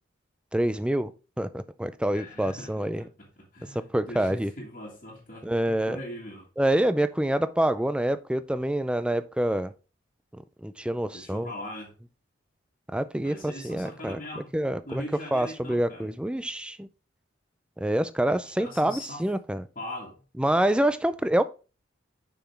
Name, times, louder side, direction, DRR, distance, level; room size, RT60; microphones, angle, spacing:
voice 1, 0.5-1.1 1.4-3.0 3.7-4.5 5.4-6.0 6.6-9.7 10.6-11.5 12.9-14.2 14.5-15.0 15.3-16.9 17.8-19.6 20.4-21.4, right 1 dB, 5° right, 0.3 m, -26 dB
voice 2, 2.1-6.5 11.1-11.9 13.2-14.5 14.8-16.1 18.6-19.2 19.7-20.2, left 1 dB, 40° left, 1.7 m, -41 dB
7.0 x 5.8 x 3.4 m
head